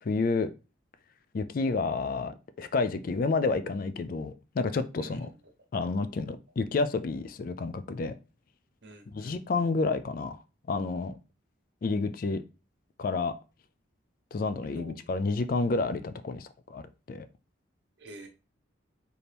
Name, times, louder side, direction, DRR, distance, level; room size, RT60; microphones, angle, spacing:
voice 1, 0.0-0.5 1.3-5.3 5.7-8.1 9.1-10.4 10.7-11.1 11.8-12.4 13.0-13.3 14.3-16.8 17.1-17.3, left 3 dB, 45° left, 0.3 m, -30 dB
voice 2, 8.8-9.7 14.7-15.1 18.0-18.3, right 1 dB, 60° right, 0.9 m, -48 dB
4.3 x 2.8 x 3.4 m
head